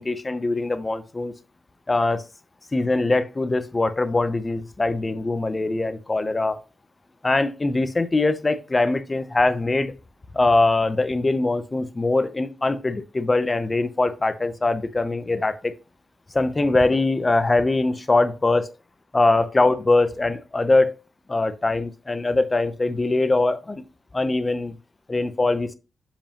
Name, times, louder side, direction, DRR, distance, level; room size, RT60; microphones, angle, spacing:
voice 1, 0.0-1.3 1.9-2.2 2.7-6.6 7.2-9.9 10.3-15.7 16.3-18.7 19.1-20.9 21.3-23.8 24.1-24.8 25.1-25.7, left 2 dB, 20° left, 0.6 m, -22 dB
7.0 x 5.0 x 2.9 m
wide cardioid pair, 135°, 0 cm